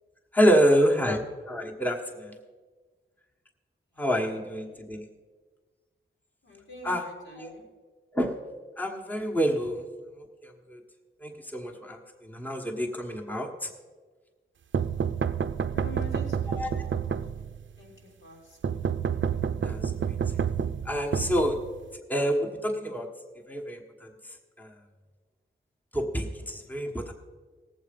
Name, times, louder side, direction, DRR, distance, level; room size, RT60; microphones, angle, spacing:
voice 1, 0.3-2.3 4.0-5.1 6.8-7.1 7.4-7.5 8.1-8.4 8.8-9.8 10.4-10.8 11.2-13.7 16.5-16.9 19.6-20.1 20.8-21.6 22.1-23.1 23.5-24.1 24.6-24.7 25.9-27.1, equal, 10° left, 1 dB, 1.3 m, -27 dB
voice 2, 3.9-4.8 6.4-7.6 15.7-17.5 17.8-17.9 18.2-18.8, left 2 dB, 80° left, -3 dB, 3.4 m, -46 dB
sound 1, 14.7-17.7 18.6-22.0, right 7 dB, 65° right, 0.5 m, -29 dB
17.5 x 7.7 x 5.2 m, 1.4 s
wide cardioid pair, 75°, 21 cm